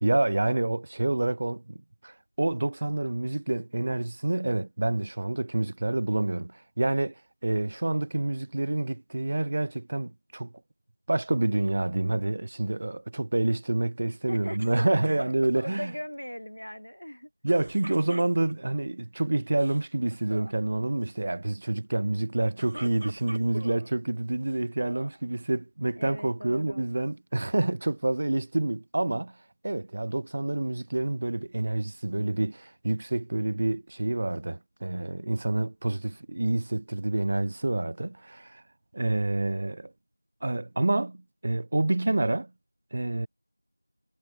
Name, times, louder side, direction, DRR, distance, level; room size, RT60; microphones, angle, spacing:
voice 1, 0.0-7.1 7.4-10.5 11.1-15.9 17.4-29.4 29.6-38.6 38.9-39.9 40.4-42.5 42.9-43.3, right 2 dB, 15° right, 0.5 m, -28 dB
voice 2, 14.3-15.3 15.6-17.3 26.0-26.8, equal, 85° left, 1.4 m, -40 dB
sound 1, 14.6-15.7 17.5-18.8 19.5-19.8 20.1-20.5 22.3-23.9 24.4-25.2, equal, 70° right, 1.7 m, -43 dB
figure-of-eight pair, 180°, 0 cm